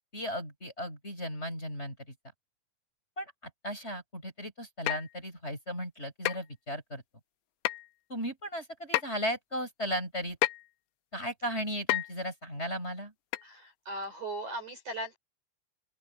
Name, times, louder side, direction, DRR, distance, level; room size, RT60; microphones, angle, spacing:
voice 1, 0.1-2.0 3.2-3.3 3.6-7.0 8.1-10.4 11.1-13.1, equal, 10° left, 7.1 m, -36 dB
sound 1, 4.9-5.1 6.3-6.4 7.7-7.9 8.9-9.0 10.4-10.7 11.9-12.1 13.3-13.5 14.0-14.1, left 18 dB, 90° left, 2.5 m, -29 dB
voice 2, 13.4-15.2, right 1 dB, 40° right, 4.5 m, -38 dB
open air
omnidirectional pair, 5.6 m